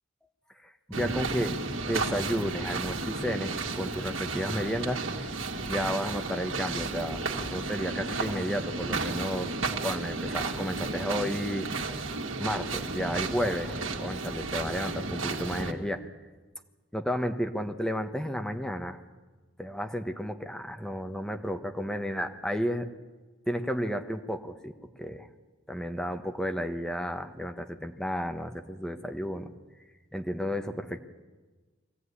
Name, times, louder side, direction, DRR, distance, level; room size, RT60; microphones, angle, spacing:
voice 1, 0.6-1.6 1.8-5.3 5.6-7.2 7.5-9.5 9.8-11.7 12.4-16.0 16.9-19.0 19.6-22.9 23.5-24.7 25.0-25.3 25.7-29.5 30.1-31.0, equal, 5° left, 6 dB, 1.2 m, -32 dB
sound 1, 0.9-15.7, right 3 dB, 90° right, 2.0 m, -33 dB
23.0 x 15.0 x 9.8 m, 1.3 s
head